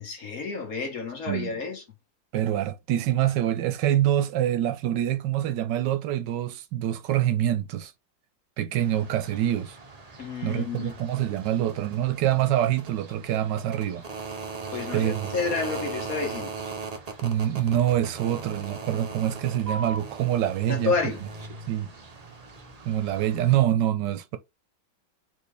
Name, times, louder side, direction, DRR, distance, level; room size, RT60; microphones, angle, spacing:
voice 1, 0.0-1.8 10.2-10.9 14.7-16.5 20.7-21.2, left 4 dB, 50° left, 1.6 m, -30 dB
voice 2, 2.3-7.9 8.6-9.8 10.4-14.0 14.9-15.4 17.2-21.0 21.7-21.9 22.8-24.4, right 12 dB, 75° right, 1.2 m, -25 dB
sound 1, 8.8-23.6, right 4 dB, 50° right, 0.4 m, -39 dB
4.3 x 3.5 x 3.4 m
omnidirectional pair, 2.0 m